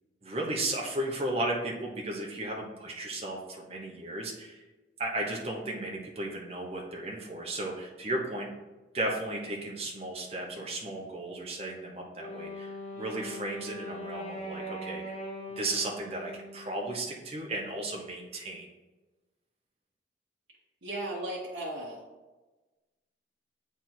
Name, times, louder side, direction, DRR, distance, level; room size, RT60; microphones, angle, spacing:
voice 1, 0.2-4.6 5.0-8.5 8.9-15.0 15.6-18.7, right 1 dB, 35° right, -1 dB, 0.9 m, -35 dB
Wind instrument woodwind instrument, 12.2-17.2, equal, 35° left, 1.1 m, -41 dB
voice 2, 20.8-22.0, right 1 dB, 90° right, -6 dB, 1.2 m, -36 dB
7.7 x 3.5 x 4.4 m, 1.2 s
head